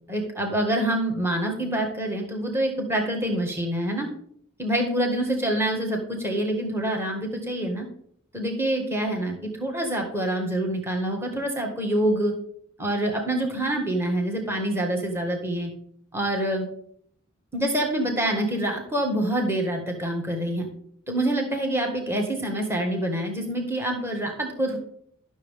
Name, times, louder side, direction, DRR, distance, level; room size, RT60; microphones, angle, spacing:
voice 1, 0.1-4.1 4.6-7.9 8.3-12.3 12.8-15.7 16.1-16.6 17.5-20.7 21.1-24.8, right 1 dB, 10° right, 2 dB, 1.6 m, -26 dB
12.0 x 6.5 x 3.6 m, 0.64 s
head